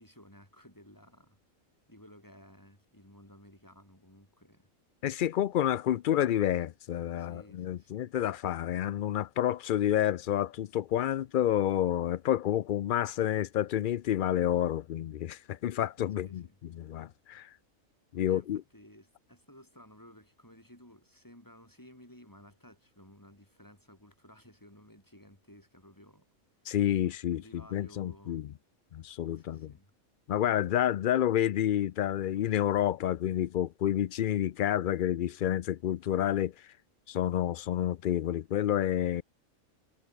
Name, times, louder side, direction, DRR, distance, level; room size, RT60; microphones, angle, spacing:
voice 1, 0.0-1.4 1.9-4.7 7.2-8.1 16.2-16.6 18.3-26.3 27.3-28.4 29.3-29.9, equal, 15° left, 6.2 m, -56 dB
voice 2, 5.0-16.4 16.8-17.5 18.1-18.6 26.7-27.4 27.7-28.4 28.9-29.7 30.3-36.7 37.1-39.2, left 11 dB, 70° left, 0.4 m, -29 dB
omnidirectional pair, 1.4 m